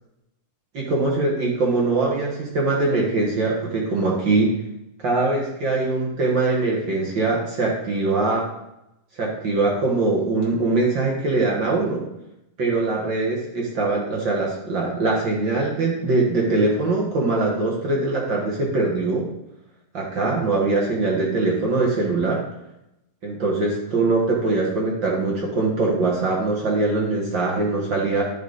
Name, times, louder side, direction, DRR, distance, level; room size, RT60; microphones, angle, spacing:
voice 1, 0.7-4.5 5.0-8.5 9.2-12.0 12.6-19.3 19.9-22.4 23.2-28.2, right 3 dB, 50° right, -2 dB, 1.5 m, -22 dB
11.5 x 5.3 x 4.0 m, 0.86 s
omnidirectional pair, 3.9 m